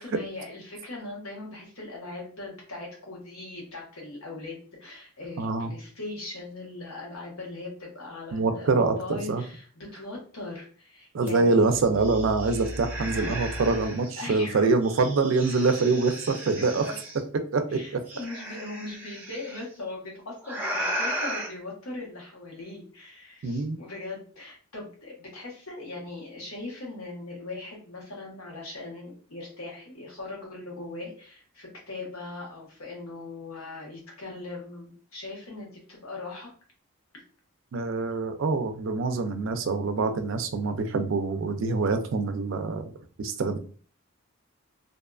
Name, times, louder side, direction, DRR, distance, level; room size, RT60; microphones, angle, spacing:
voice 1, 0.0-11.6 14.2-14.7 16.5-17.0 17.7-36.5, left 2 dB, 90° left, -2 dB, 1.1 m, -40 dB
voice 2, 5.4-5.7 8.3-9.4 11.1-16.8 17.5-17.8 23.4-23.8 37.7-42.9 43.2-43.6, right 3 dB, 65° right, 7 dB, 0.4 m, -25 dB
sound 1, 11.3-11.4 11.7-14.1 14.8-17.2 18.1-19.6 20.4-21.5, equal, 10° right, 0.5 m, -35 dB
2.6 x 2.4 x 2.2 m, 0.43 s
head